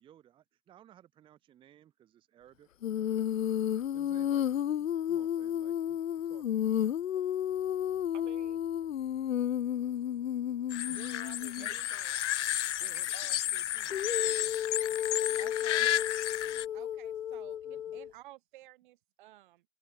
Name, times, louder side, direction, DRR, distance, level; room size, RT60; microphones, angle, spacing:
voice 1, 0.0-3.1 3.9-4.4 5.1-6.0 6.3-6.4 9.6-9.7 10.0-10.9 11.6-11.9 12.8-15.4 16.4-16.7 17.6-18.0, right 11 dB, 15° right, 1.3 m, -59 dB
Female singing, 2.8-11.7 13.9-18.1, left 10 dB, 90° left, 1.0 m, -32 dB
voice 2, 8.1-8.7 10.9-12.2 13.1-13.4 15.8-16.1, right 9 dB, 70° right, 6.5 m, -52 dB
sound 1, 10.7-16.7, left 12 dB, 65° left, 0.7 m, -32 dB
voice 3, 15.4-15.8 16.7-19.6, right 16 dB, 40° right, 1.4 m, -54 dB
hypercardioid pair, 155°, 38 cm